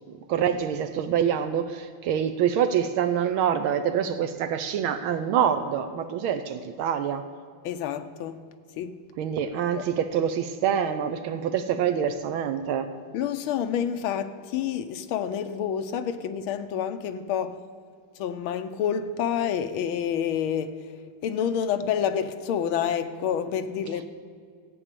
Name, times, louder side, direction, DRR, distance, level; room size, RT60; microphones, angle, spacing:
voice 1, 0.3-7.3 9.2-12.9, right 8 dB, 80° right, 1.5 m, -26 dB
voice 2, 7.6-8.4 8.8-9.0 9.7-9.9 13.1-17.6 18.2-24.1, left 8 dB, 85° left, 1.6 m, -28 dB
14.5 x 8.6 x 6.7 m
omnidirectional pair, 2.3 m